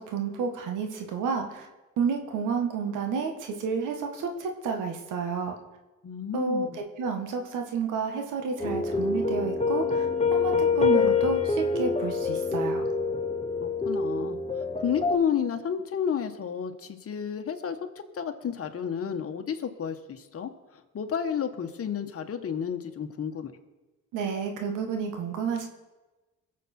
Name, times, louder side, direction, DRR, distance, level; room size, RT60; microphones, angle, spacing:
voice 1, 0.0-1.7 2.0-5.6 6.3-12.9 24.1-25.7, right 5 dB, 90° right, 4 dB, 1.7 m, -30 dB
voice 2, 6.0-6.8 13.6-14.4 14.8-17.8 18.1-23.5, left 8 dB, 50° left, 6 dB, 1.5 m, -31 dB
sound 1, 8.6-15.2, left 4 dB, 20° left, 1.2 m, -26 dB
22.5 x 7.7 x 4.5 m, 1.2 s
cardioid pair, 90°, 30 cm